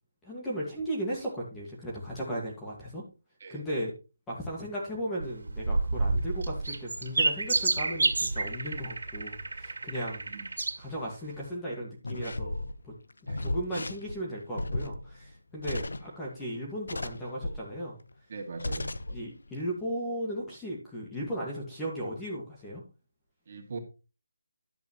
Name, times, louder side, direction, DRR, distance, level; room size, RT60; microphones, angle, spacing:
voice 1, 0.2-3.0 3.5-3.9 4.3-10.2 10.8-12.6 12.8-12.9 13.4-18.0 19.1-22.8, equal, 5° left, -4 dB, 1.9 m, -36 dB
sound 1, 5.2-10.8 11.4-11.5, right 3 dB, 75° right, 2.2 m, -29 dB
sound 2, 12.0-16.4 16.9-17.7 18.1-18.2 18.6-19.2 19.5-19.7, left 2 dB, 80° left, 1.0 m, -35 dB
voice 2, 18.3-18.9 23.5-23.8, right 4 dB, 35° right, 2 dB, 2.3 m, -40 dB
11.0 x 8.0 x 3.1 m, 0.30 s
figure-of-eight pair, 170°, 0 cm